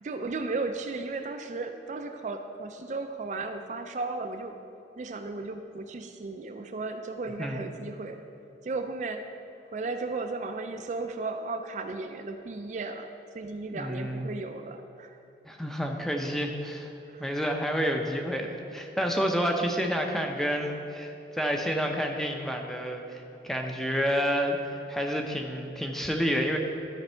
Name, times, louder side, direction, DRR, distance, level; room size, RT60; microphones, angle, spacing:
voice 1, 0.0-4.5 5.0-8.2 8.6-9.2 9.7-13.1 13.3-15.2 17.1-17.4, right 3 dB, 45° right, 6 dB, 0.4 m, -35 dB
voice 2, 13.7-14.3 15.5-16.9 17.2-26.6, equal, ahead, 2 dB, 0.6 m, -29 dB
12.5 x 5.2 x 4.4 m, 2.9 s
head